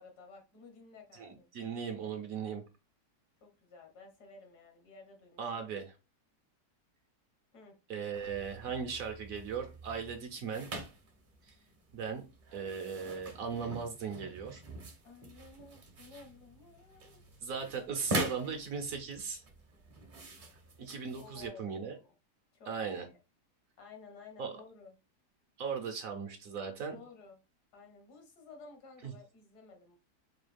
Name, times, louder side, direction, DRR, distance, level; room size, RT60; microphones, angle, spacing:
voice 1, 0.0-1.5 3.4-5.7 7.5-7.8 13.1-13.2 15.0-17.2 21.2-22.2 22.5-23.2 23.8-25.0 26.9-27.4 27.7-30.0, left 4 dB, 70° left, 1.6 m, -54 dB
voice 2, 1.1-2.6 5.4-5.8 7.9-10.7 11.9-12.2 12.5-14.6 17.4-19.4 20.8-22.0 22.7-23.1 24.4-24.5 25.6-27.0 29.0-29.1, right 6 dB, 65° right, 1.0 m, -38 dB
sound 1, 8.1-21.5, right 1 dB, 40° right, 0.7 m, -44 dB
4.6 x 2.3 x 3.3 m
omnidirectional pair, 1.8 m